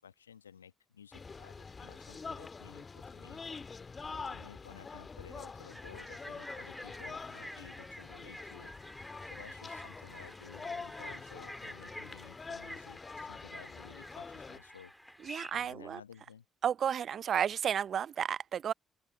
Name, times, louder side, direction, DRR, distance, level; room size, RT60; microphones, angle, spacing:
voice 1, 0.0-3.4 4.1-8.7 9.3-14.9 15.5-16.5, left 7 dB, 85° left, 1.1 m, -54 dB
sound 1, 1.1-14.6, left 4 dB, 35° left, 1.6 m, -46 dB
sound 2, 5.7-15.5, equal, ahead, 1.8 m, -49 dB
voice 2, 15.2-16.0 16.6-18.7, right 8 dB, 55° right, 0.6 m, -32 dB
open air
figure-of-eight pair, 40°, 0 cm